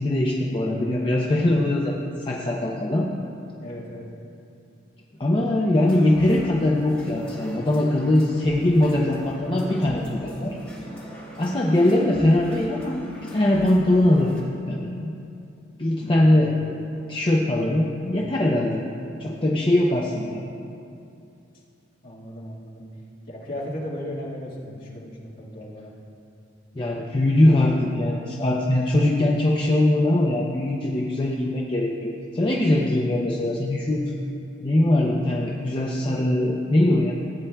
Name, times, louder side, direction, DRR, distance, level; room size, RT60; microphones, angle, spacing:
voice 1, 0.0-3.1 5.2-10.6 11.4-14.4 14.7-15.1 15.8-16.8 17.1-18.9 19.2-20.4 26.7-34.1 34.6-37.1, left 1 dB, 25° left, -2 dB, 0.5 m, -21 dB
voice 2, 3.6-4.0 22.0-22.8 23.3-25.9, equal, 50° left, -6 dB, 1.7 m, -36 dB
sound 1, 5.7-14.4, equal, 5° left, 1.9 m, -41 dB
15.5 x 8.5 x 2.3 m, 2.6 s
head